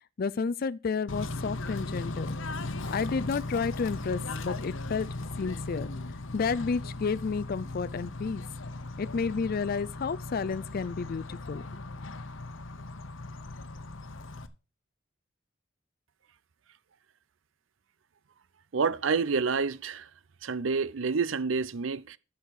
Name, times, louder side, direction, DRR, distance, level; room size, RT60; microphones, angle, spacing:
voice 1, 0.2-2.3 2.9-5.1 5.4-5.9 6.3-8.4 9.0-11.6, left 5 dB, 50° left, 0.4 m, -31 dB
Bird / Train, 1.1-14.5, left 2 dB, 80° left, 0.9 m, -38 dB
voice 2, 18.7-20.1 20.4-22.2, right 5 dB, 80° right, 0.6 m, -28 dB
10.5 x 7.1 x 4.7 m
head